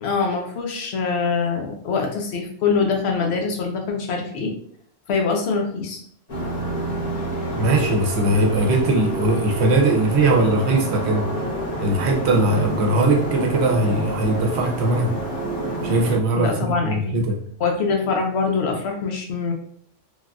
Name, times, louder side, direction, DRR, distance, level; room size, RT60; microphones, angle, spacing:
voice 1, 0.0-4.5 5.1-6.0 16.4-17.2 17.6-19.5, left 5 dB, 65° left, 2 dB, 0.8 m, -24 dB
sound 1, 6.3-16.2, right 1 dB, 85° left, 1.3 m, -28 dB
voice 2, 7.5-11.2 11.8-15.1 15.8-17.4, right 2 dB, 65° right, 2 dB, 0.9 m, -20 dB
3.2 x 2.4 x 2.3 m, 0.63 s
omnidirectional pair, 1.2 m